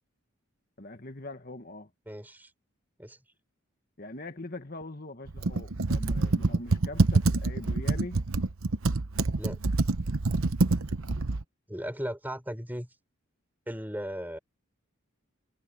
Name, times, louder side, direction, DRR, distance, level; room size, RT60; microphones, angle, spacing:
voice 1, 0.8-1.9 4.0-8.2, left 2 dB, 45° left, 1.7 m, -42 dB
voice 2, 2.1-2.5 3.0-3.2 9.3-9.6 11.7-12.9 13.7-14.4, equal, 10° right, 4.8 m, -36 dB
Computer keyboard, 5.3-11.4, right 3 dB, 75° right, 0.9 m, -26 dB
head